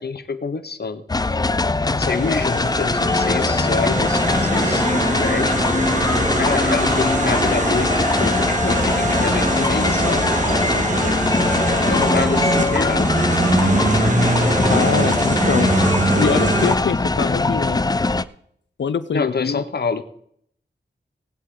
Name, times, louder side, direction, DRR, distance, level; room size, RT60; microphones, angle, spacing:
voice 1, 0.0-1.4 1.8-5.6 6.4-10.4 11.0-11.2 11.7-13.1 19.1-20.0, left 5 dB, 60° left, 11 dB, 1.1 m, -27 dB
sound 1, 1.1-18.2, left 3 dB, 20° left, 0.5 m, -21 dB
sound 2, 2.1-16.8, right 2 dB, 40° right, 1.9 m, -23 dB
voice 2, 14.7-15.7 16.1-17.8 18.8-19.6, left 6 dB, 75° left, 14 dB, 0.7 m, -23 dB
18.5 x 8.1 x 3.9 m, 0.68 s
cardioid pair, 60°, 19 cm